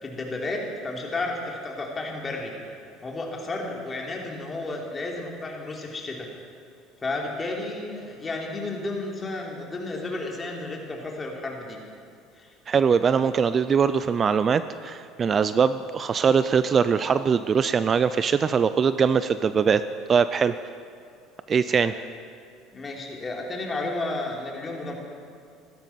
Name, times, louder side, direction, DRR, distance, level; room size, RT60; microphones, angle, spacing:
voice 1, 0.0-2.5 3.0-6.3 7.0-11.8 12.4-12.5 21.7-22.0 22.7-25.0, left 2 dB, 25° left, 0 dB, 3.3 m, -32 dB
voice 2, 12.7-19.8 20.1-20.5 21.5-21.9, right 6 dB, 35° right, 13 dB, 0.5 m, -22 dB
16.0 x 12.5 x 5.8 m, 2.4 s
supercardioid pair, 90°, 0 cm